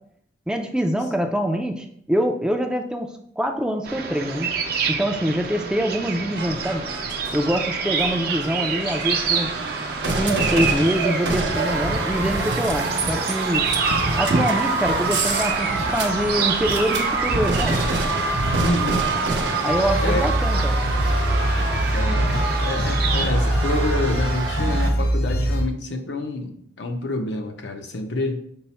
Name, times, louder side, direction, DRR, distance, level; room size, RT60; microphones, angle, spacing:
voice 1, 0.5-3.1 3.4-4.5 4.9-6.8 7.3-9.6 10.2-13.6 14.2-17.8 19.6-20.8, equal, 5° right, 4 dB, 0.3 m, -25 dB
sound 1, 3.9-23.3, right 4 dB, 60° right, 0.6 m, -28 dB
sound 2, 6.4-24.9, right 3 dB, 85° right, 0.8 m, -26 dB
voice 2, 18.6-19.1 20.0-20.3 21.9-28.4, left 2 dB, 80° left, 5 dB, 0.6 m, -27 dB
sound 3, 19.7-25.6, right 1 dB, 60° left, 0.8 m, -23 dB
5.5 x 2.0 x 4.1 m, 0.68 s
head